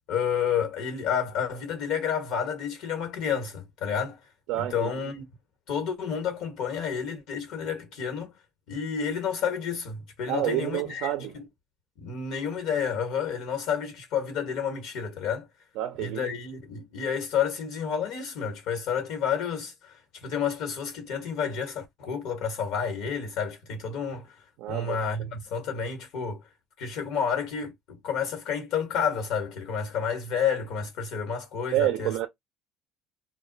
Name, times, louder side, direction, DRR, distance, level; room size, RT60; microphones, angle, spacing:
voice 1, 0.1-4.2 4.6-5.2 5.7-8.3 8.7-11.1 11.3-11.4 12.0-15.5 16.0-24.3 24.7-26.4 26.8-32.1, left 7 dB, 80° left, 1.1 m, -30 dB
voice 2, 4.5-4.9 10.3-11.4 15.8-16.3 24.6-25.0 31.7-32.3, right 14 dB, 80° right, 0.4 m, -28 dB
2.2 x 2.1 x 3.8 m
supercardioid pair, 90°, 0 cm